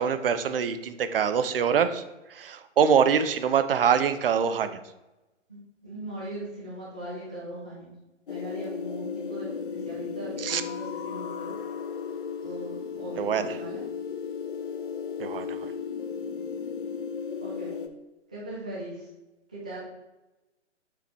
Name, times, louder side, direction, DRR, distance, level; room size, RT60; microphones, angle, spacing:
voice 1, 0.0-2.0 2.3-4.8 10.4-10.6 13.2-13.6 15.2-15.7, right 7 dB, 50° right, 10 dB, 0.6 m, -24 dB
voice 2, 5.8-7.9 8.3-11.5 12.4-13.8 17.4-17.7 18.3-19.1 19.5-19.8, right 1 dB, 5° right, -8 dB, 0.3 m, -39 dB
sound 1, 8.3-17.9, left 6 dB, 45° left, 0.6 m, -35 dB
5.9 x 3.9 x 4.4 m, 1.0 s
figure-of-eight pair, 125°, 36 cm